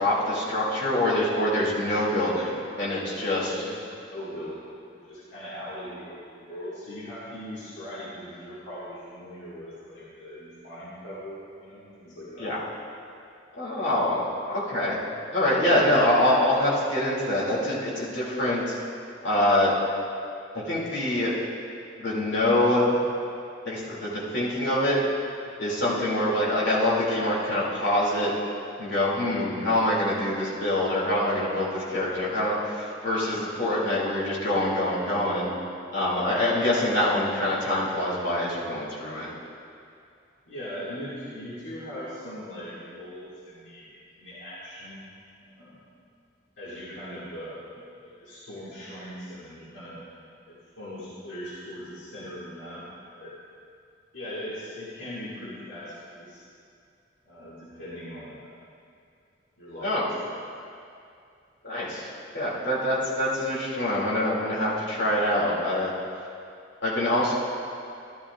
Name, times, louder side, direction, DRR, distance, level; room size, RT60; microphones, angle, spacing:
voice 1, 0.0-3.6 12.4-12.6 13.5-15.0 15.3-18.7 19.2-19.7 20.5-21.3 22.0-23.0 23.6-25.0 25.6-28.3 28.8-35.5 35.9-39.3 59.8-60.0 61.6-65.9 66.8-67.3, left 1 dB, 70° left, -7 dB, 2.5 m, -25 dB
voice 2, 3.5-12.5 40.5-45.1 45.6-45.9 46.6-50.0 50.5-52.8 53.1-53.4 54.1-56.4 57.2-58.6 59.6-60.4, equal, 90° left, -9 dB, 1.9 m, -40 dB
12.5 x 12.5 x 2.4 m, 2.4 s
head